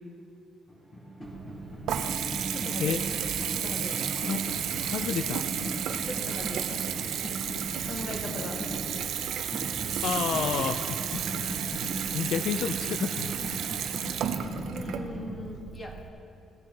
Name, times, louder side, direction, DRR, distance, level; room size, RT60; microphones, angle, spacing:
tambor mexica, 0.7-15.2, right 1 dB, 20° left, 2.6 m, -38 dB
Water tap faucet / Bathtub (filling or washing) / Trickle dribble, 1.2-16.1, right 9 dB, 75° right, 0.6 m, -33 dB
voice 1, 2.5-3.0 3.5-4.1 6.0-6.8 7.8-8.6 14.7-16.0, left 2 dB, 35° left, 1 dB, 1.7 m, -40 dB
voice 2, 4.8-5.4 10.0-11.1 11.3-11.8 12.1-13.3, left 8 dB, 75° left, 8 dB, 0.3 m, -31 dB
16.0 x 9.8 x 3.3 m, 2.6 s
cardioid pair, 90°, 0 cm